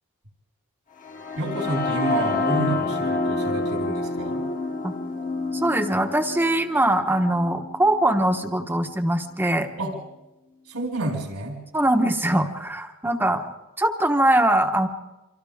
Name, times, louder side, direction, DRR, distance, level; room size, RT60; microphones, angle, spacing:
sound 1, 1.0-8.9, left 3 dB, 35° left, 1.3 m, -28 dB
voice 1, 1.3-4.4 9.8-9.9 10.7-11.6, right 2 dB, 80° right, 0 dB, 4.8 m, -29 dB
voice 2, 5.5-9.7 11.7-13.4 13.8-14.9, right 1 dB, 10° right, 5 dB, 1.1 m, -22 dB
29.0 x 25.0 x 3.6 m, 1.0 s
head